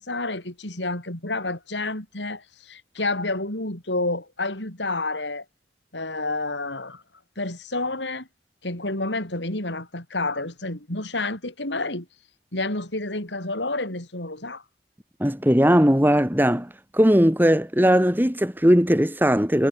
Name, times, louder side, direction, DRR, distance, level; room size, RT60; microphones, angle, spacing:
voice 1, 0.0-5.5 5.9-7.0 7.4-8.3 8.6-12.1 12.5-14.6, left 2 dB, 90° left, 6.9 m, -29 dB
voice 2, 15.2-19.7, equal, 10° right, 2.2 m, -19 dB
head